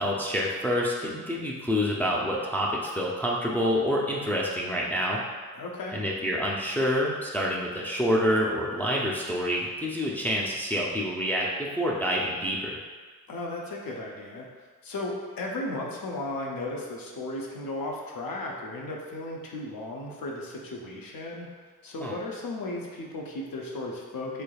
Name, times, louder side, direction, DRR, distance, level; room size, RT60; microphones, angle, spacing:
voice 1, 0.0-5.2 5.9-12.8 22.0-22.2, equal, 5° left, -4 dB, 0.4 m, -27 dB
voice 2, 5.5-6.0 13.3-21.5 21.8-24.4, left 2 dB, 85° left, -1 dB, 0.7 m, -35 dB
3.7 x 3.3 x 2.3 m, 1.5 s
wide cardioid pair, 80°, 33 cm